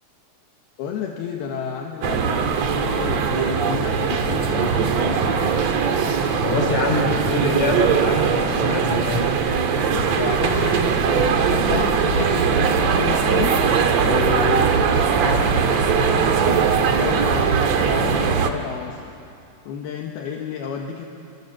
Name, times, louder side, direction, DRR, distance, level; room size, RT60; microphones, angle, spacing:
voice 1, 0.8-5.1 9.9-13.6 14.0-19.0 19.6-21.1, left 7 dB, 75° left, 1 dB, 3.2 m, -30 dB
sound 1, 2.0-18.5, right 6 dB, 55° right, 2.1 m, -20 dB
voice 2, 6.4-9.2, left 2 dB, 45° left, 1 dB, 5.4 m, -24 dB
28.0 x 26.5 x 7.5 m, 2.5 s
omnidirectional pair, 4.7 m